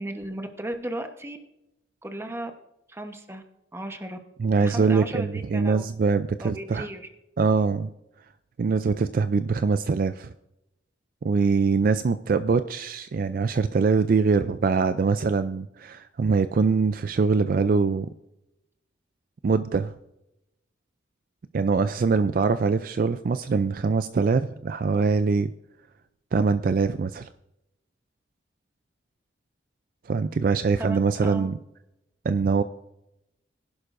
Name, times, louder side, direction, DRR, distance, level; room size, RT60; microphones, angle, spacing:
voice 1, 0.0-1.4 2.0-2.5 2.9-3.4 3.7-4.2 4.6-5.8 6.4-7.1 30.8-31.5, right 1 dB, 15° right, 5 dB, 1.0 m, -35 dB
voice 2, 4.4-6.9 7.4-7.9 8.6-10.3 11.2-18.1 19.4-19.9 21.5-25.5 26.3-27.3 30.1-31.6 32.2-32.6, right 4 dB, 50° right, 12 dB, 0.3 m, -23 dB
21.0 x 11.0 x 2.6 m, 0.87 s
head